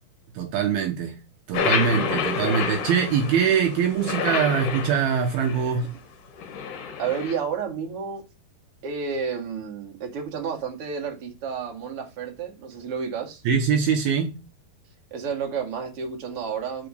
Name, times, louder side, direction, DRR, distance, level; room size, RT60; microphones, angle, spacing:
voice 1, 0.4-1.2 1.5-5.9 13.5-14.4, right 7 dB, 75° right, 2.7 m, -23 dB
sound 1, 1.5-5.8 6.4-7.4, left 6 dB, 60° left, 2.7 m, -29 dB
voice 2, 7.0-8.2 8.8-13.4 15.1-16.9, right 6 dB, 40° right, 2.4 m, -31 dB
6.2 x 4.8 x 6.5 m
omnidirectional pair, 4.8 m